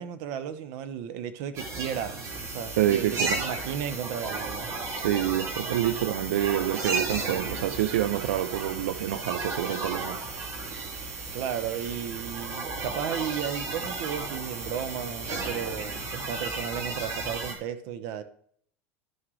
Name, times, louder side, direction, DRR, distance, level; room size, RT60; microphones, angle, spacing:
voice 1, 0.0-4.7 11.3-18.2, right 9 dB, 65° right, 1.0 m, -34 dB
sound 1, 1.6-17.6, right 3 dB, 45° right, 2.3 m, -34 dB
voice 2, 2.8-3.4 4.9-10.2, right 13 dB, 80° right, 0.5 m, -27 dB
12.5 x 6.1 x 3.2 m
hypercardioid pair, 95°, 7 cm